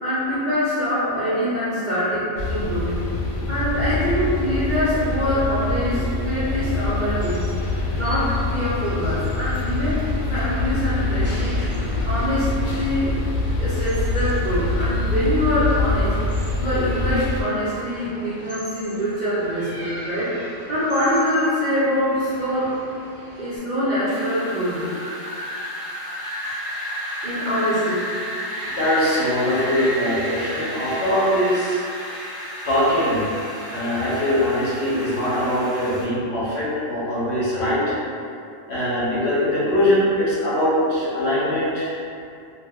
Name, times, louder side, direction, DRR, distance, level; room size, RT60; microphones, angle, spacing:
voice 1, 0.0-3.1 3.5-13.1 13.6-16.2 16.6-22.8 23.4-24.9 27.2-28.1, equal, 50° right, -13 dB, 0.5 m, -24 dB
sound 1, 2.4-17.4, left 2 dB, 85° left, 1.0 m, -25 dB
sound 2, 6.4-23.6, equal, 10° left, 0.6 m, -41 dB
Wind, 24.1-36.0, equal, 20° right, 0.8 m, -32 dB
voice 2, 28.6-31.9 32.6-33.3 33.7-38.0 38.7-42.0, left 1 dB, 60° left, -10 dB, 1.1 m, -22 dB
2.5 x 2.1 x 3.5 m, 2.5 s
omnidirectional pair, 1.4 m